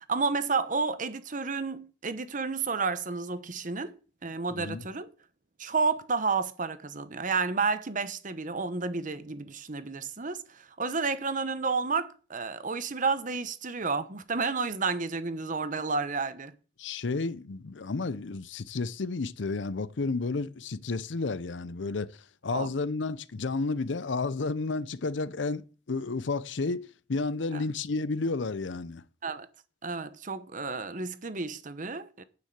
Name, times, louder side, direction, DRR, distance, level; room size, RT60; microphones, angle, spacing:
voice 1, 0.1-3.9 4.2-5.1 5.6-16.5 22.5-22.7 27.5-27.6 29.2-29.5 29.8-32.2, right 4 dB, 45° right, 1.0 m, -31 dB
voice 2, 16.8-22.1 22.4-29.0, left 3 dB, 75° left, 0.7 m, -31 dB
9.5 x 6.5 x 8.2 m
head